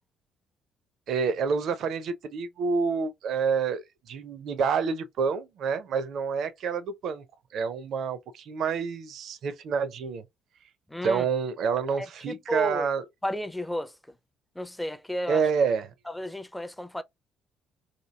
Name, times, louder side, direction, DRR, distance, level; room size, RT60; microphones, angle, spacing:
voice 1, 1.1-7.2 7.5-10.2 11.0-13.0 15.3-15.9, right 6 dB, 55° right, 0.5 m, -28 dB
voice 2, 10.9-11.3 11.9-12.9 13.2-13.9 14.6-15.4 16.1-17.0, equal, 5° left, 0.5 m, -33 dB
2.9 x 2.5 x 2.2 m
figure-of-eight pair, 45°, 0 cm